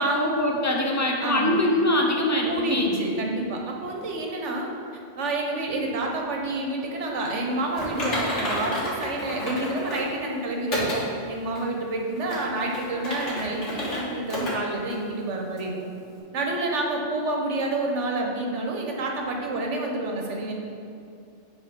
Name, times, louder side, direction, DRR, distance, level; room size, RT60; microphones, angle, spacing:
voice 1, 0.0-2.9, left 1 dB, 20° left, 0 dB, 0.6 m, -23 dB
voice 2, 1.2-1.6 2.5-4.7 5.2-11.0 11.3-15.9 16.3-20.5, right 2 dB, 85° right, 1 dB, 1.3 m, -28 dB
Typing, 7.8-10.1 10.7-11.0 11.5-11.6 12.2-14.0 14.3-14.5 14.9-15.0 15.6-15.7, left 1 dB, 80° left, 2.0 m, -30 dB
9.2 x 3.6 x 5.1 m, 2.6 s
omnidirectional pair, 1.2 m